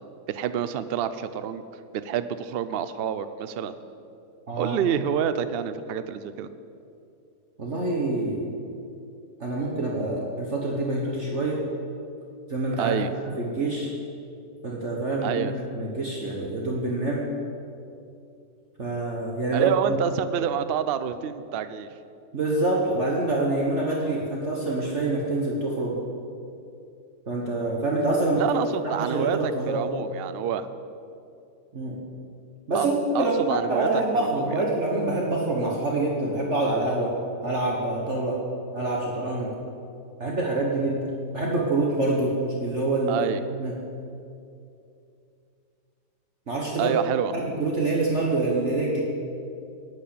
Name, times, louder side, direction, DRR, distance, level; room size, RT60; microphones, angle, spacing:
voice 1, 0.3-1.6 1.9-3.7 4.6-6.5 12.8-13.1 15.2-15.5 19.5-21.9 28.4-30.7 32.7-32.9 33.1-34.6 43.1-43.4 46.8-47.3, right 9 dB, 70° right, 12 dB, 0.5 m, -28 dB
voice 2, 4.5-4.8 7.6-8.4 9.4-11.6 12.5-13.9 14.6-17.3 18.8-19.7 22.3-26.0 27.3-28.4 28.8-29.9 31.7-32.0 32.7-37.1 37.4-38.4 38.7-39.5 40.2-41.0 41.3-42.3 42.6-43.1 43.5-43.7 46.5-47.0 47.3-49.0, right 2 dB, 45° right, -2 dB, 1.7 m, -26 dB
11.5 x 9.2 x 8.5 m, 2.6 s
omnidirectional pair, 1.8 m